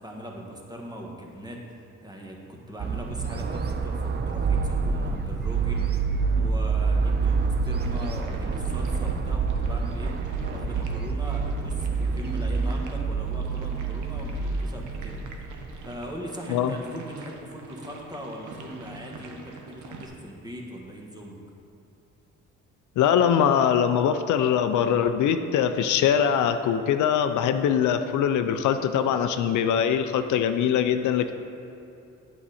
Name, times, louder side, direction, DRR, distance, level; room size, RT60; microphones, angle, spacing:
voice 1, 0.0-10.1 10.5-15.5 15.8-21.4, equal, 15° right, 0 dB, 1.3 m, -40 dB
sound 1, 2.8-15.9, right 4 dB, 35° right, 0.6 m, -27 dB
sound 2, 7.8-20.1, right 4 dB, 75° right, 1.0 m, -45 dB
voice 2, 23.0-31.3, left 8 dB, 75° left, 9 dB, 0.5 m, -22 dB
8.6 x 6.7 x 4.2 m, 2.7 s
cardioid pair, 90°, 30 cm